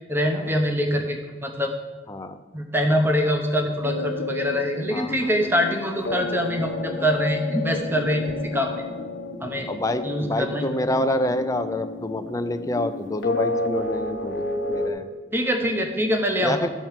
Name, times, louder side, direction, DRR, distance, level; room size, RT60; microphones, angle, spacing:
voice 1, 0.1-1.7 2.5-8.7 9.4-9.7 10.0-10.7 15.3-16.7, equal, 10° right, 3 dB, 0.8 m, -24 dB
voice 2, 2.1-2.4 4.9-5.3 9.7-15.1 16.4-16.7, left 1 dB, 15° left, 9 dB, 0.5 m, -27 dB
sound 1, 3.8-14.9, left 2 dB, 65° left, 1.0 m, -31 dB
12.0 x 4.5 x 7.4 m, 1.4 s
head